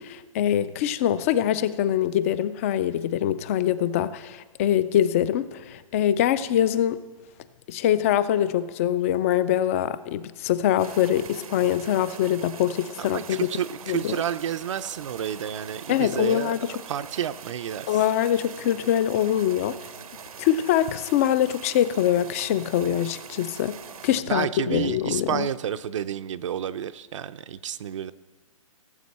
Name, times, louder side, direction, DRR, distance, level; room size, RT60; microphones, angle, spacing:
voice 1, 0.0-7.0 7.7-13.4 13.9-14.2 15.9-16.6 17.9-19.8 20.4-23.8 24.0-25.5, left 11 dB, 25° left, 15 dB, 0.3 m, -24 dB
sound 1, 10.8-24.2, right 6 dB, 90° right, 0.9 m, -43 dB
voice 2, 13.0-16.5 16.9-18.0 24.3-28.1, right 9 dB, 60° right, 10 dB, 0.5 m, -30 dB
17.5 x 7.5 x 4.2 m, 1.4 s
hypercardioid pair, 155°, 18 cm